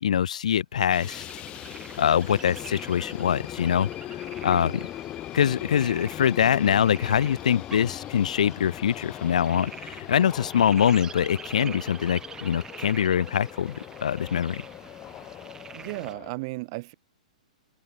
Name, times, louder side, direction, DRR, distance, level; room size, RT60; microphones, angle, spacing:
voice 1, 0.0-1.3 2.0-4.8 5.3-14.6, left 9 dB, 70° left, 1.9 m, -24 dB
sound 1, 0.8-16.3, left 13 dB, 30° left, 4.3 m, -40 dB
sound 2, 0.9-16.1, right 6 dB, 15° right, 7.2 m, -46 dB
voice 2, 15.7-16.9, right 25 dB, 45° right, 4.5 m, -36 dB
hypercardioid pair, 115°, 4 cm